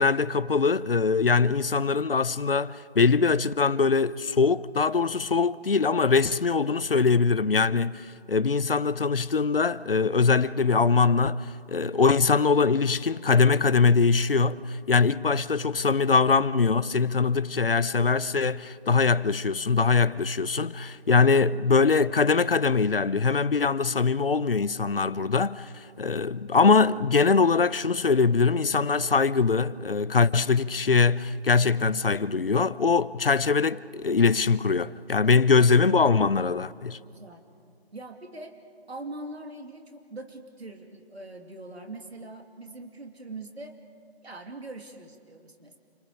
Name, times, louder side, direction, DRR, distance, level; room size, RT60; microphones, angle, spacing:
voice 1, 0.0-37.0, left 4 dB, 60° left, 0.8 m, -22 dB
voice 2, 37.0-37.4 37.9-38.5 38.9-43.7 44.2-45.8, right 2 dB, 75° right, 2.9 m, -42 dB
29.0 x 28.5 x 5.1 m
figure-of-eight pair, 170°, 32 cm